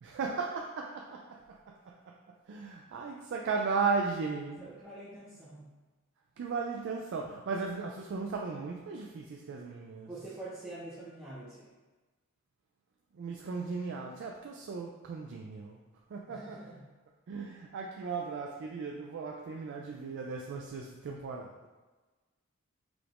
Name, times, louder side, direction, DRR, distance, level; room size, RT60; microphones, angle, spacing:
voice 1, 0.0-2.2 2.5-4.6 6.4-10.1 13.1-15.8 16.1-16.7 17.3-21.7, right 4 dB, 55° right, 1 dB, 0.3 m, -36 dB
voice 2, 4.6-5.7 10.1-11.7 16.3-16.9, right 2 dB, 10° right, -11 dB, 0.8 m, -45 dB
4.8 x 3.4 x 2.5 m, 1.3 s
head